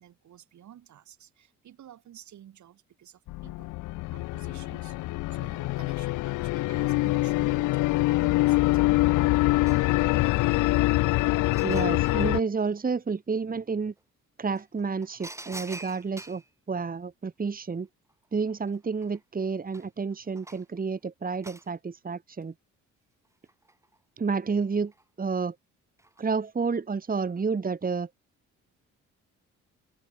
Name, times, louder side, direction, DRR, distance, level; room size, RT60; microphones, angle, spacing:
voice 1, 0.0-3.7 4.1-5.0 5.3-9.3, right 11 dB, 70° right, 6.2 m, -51 dB
sound 1, 3.3-12.4, left 20 dB, 85° left, 0.5 m, -25 dB
tea tray down, 8.9-9.0 9.3-10.5 11.0-12.3 14.0-14.1 14.6-16.5 18.1-18.2 18.5-20.8 21.4-21.7 23.3-24.0 24.5-25.0 26.0-26.3 26.6-26.7, right 1 dB, 10° right, 2.4 m, -46 dB
voice 2, 11.6-13.9 14.4-16.4 16.7-17.9 18.3-22.5 24.2-24.9 25.2-25.6 26.2-28.1, right 5 dB, 30° right, 1.9 m, -30 dB
cardioid pair, 90°, 30 cm